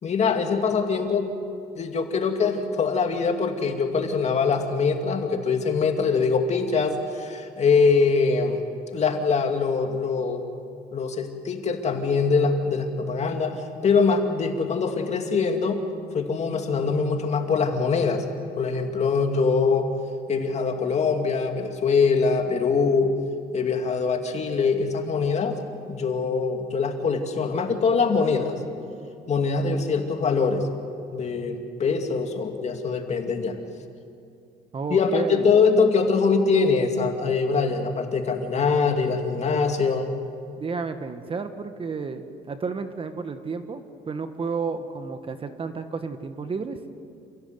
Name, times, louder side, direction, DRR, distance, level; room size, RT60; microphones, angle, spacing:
voice 1, 0.0-1.3 1.8-8.6 8.9-10.5 10.9-15.8 16.1-18.2 18.6-19.9 20.3-23.1 23.5-25.6 25.9-28.6 29.3-30.7 31.1-33.6 34.9-40.1, left 5 dB, 40° left, 4 dB, 2.5 m, -23 dB
voice 2, 34.7-35.5 40.6-46.8, right 5 dB, 30° right, 9 dB, 1.3 m, -31 dB
28.5 x 16.0 x 8.1 m, 2.5 s
cardioid pair, 110°, 17 cm